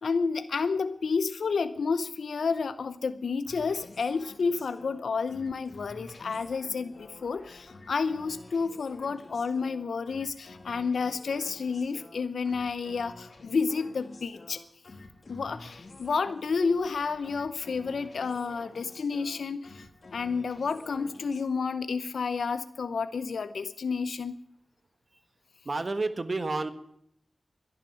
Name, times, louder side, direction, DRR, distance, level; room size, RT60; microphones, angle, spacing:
voice 1, 0.0-14.6 15.3-19.9 20.1-24.4, left 5 dB, 90° left, 12 dB, 0.7 m, -30 dB
sound 1, 3.4-21.4, left 2 dB, 60° left, 2.3 m, -50 dB
voice 2, 25.6-26.7, right 3 dB, 55° right, 11 dB, 1.6 m, -30 dB
12.5 x 11.0 x 9.9 m, 0.74 s
cardioid pair, 45°, 0 cm